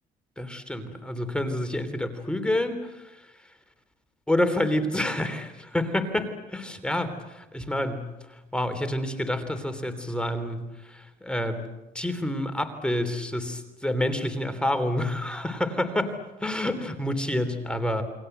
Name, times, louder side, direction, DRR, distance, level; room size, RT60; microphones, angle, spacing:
voice 1, 0.4-3.3 4.3-11.7 11.9-18.0, left 1 dB, 5° left, 7 dB, 3.4 m, -28 dB
29.5 x 23.5 x 8.1 m, 1.0 s
cardioid pair, 110°, 17 cm